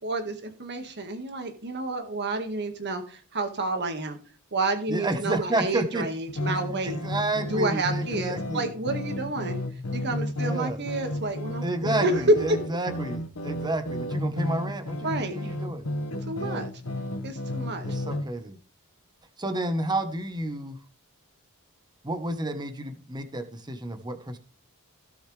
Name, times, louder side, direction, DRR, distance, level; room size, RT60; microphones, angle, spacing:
voice 1, 0.0-4.2 4.5-7.0 7.5-9.6 9.9-12.6 15.0-15.5 16.3-16.7 17.2-17.9, right 2 dB, 50° right, 6 dB, 1.9 m, -29 dB
voice 2, 4.9-6.0 6.5-6.6 6.8-8.7 10.4-10.8 11.6-15.9 16.4-16.7 17.8-18.6 19.4-20.8 22.0-24.4, right 2 dB, 20° right, 8 dB, 1.2 m, -31 dB
sound 1, 6.3-18.2, left 1 dB, 75° left, 1.6 m, -32 dB
16.5 x 6.3 x 3.4 m, 0.37 s
head